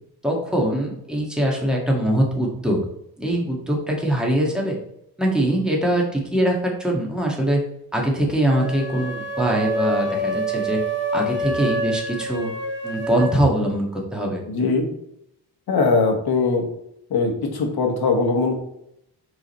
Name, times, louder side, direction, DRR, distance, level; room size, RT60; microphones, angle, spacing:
voice 1, 0.2-2.8 3.2-4.8 5.2-7.6 7.9-10.8 11.1-12.5 12.8-14.4, right 1 dB, ahead, -1 dB, 1.6 m, -22 dB
sound 1, 8.4-13.4, right 1 dB, 30° right, 1.6 m, -26 dB
voice 2, 14.5-14.9 15.7-16.7 17.1-18.5, left 4 dB, 70° left, 3 dB, 1.5 m, -20 dB
5.0 x 4.8 x 4.2 m, 0.77 s
cardioid pair, 115°, 39 cm